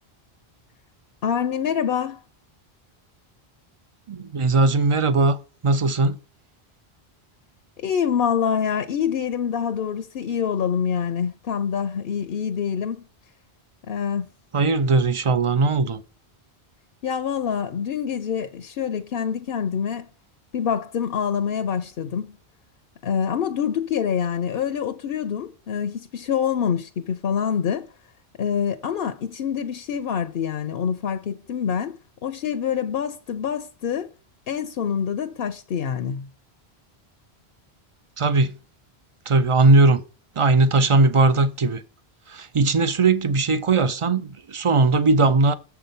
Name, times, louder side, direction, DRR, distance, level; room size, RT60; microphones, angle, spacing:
voice 1, 1.2-2.2 7.8-13.0 13.9-14.3 17.0-20.1 20.5-22.4 23.0-27.9 28.4-34.1 34.5-36.3, left 7 dB, 65° left, 0.8 m, -26 dB
voice 2, 4.1-5.4 5.6-6.2 14.5-16.0 38.2-38.5 39.3-40.0 40.4-41.8 42.3-45.5, right 3 dB, 35° right, 0.6 m, -19 dB
7.4 x 5.9 x 5.2 m
omnidirectional pair, 1.1 m